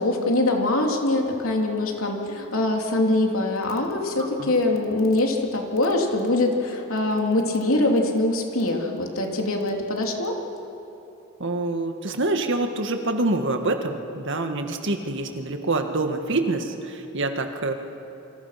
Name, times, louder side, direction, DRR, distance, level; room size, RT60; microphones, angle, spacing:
voice 1, 0.0-10.4, left 2 dB, 75° left, 1 dB, 3.1 m, -23 dB
voice 2, 4.2-4.5 11.4-17.7, right 2 dB, 60° right, 5 dB, 1.8 m, -26 dB
28.5 x 25.5 x 5.9 m, 2.9 s
head